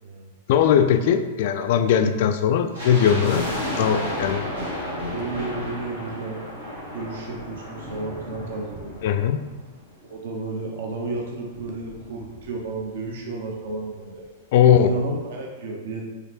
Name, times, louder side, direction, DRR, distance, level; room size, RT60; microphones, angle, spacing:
voice 1, 0.5-3.5 3.8-4.4 9.0-9.4 14.5-14.9, left 8 dB, 50° left, 8 dB, 0.3 m, -19 dB
sound 1, 2.7-10.0 10.3-10.4 11.0-12.9 13.1-13.2 13.4-13.7 14.2-14.3, left 1 dB, 75° right, 1.3 m, -33 dB
voice 2, 5.0-6.6 6.9-8.9 10.1-14.3 14.6-16.0, right 3 dB, 55° right, 0 dB, 0.5 m, -32 dB
4.9 x 3.1 x 2.8 m, 1.3 s
figure-of-eight pair, 95°, 0 cm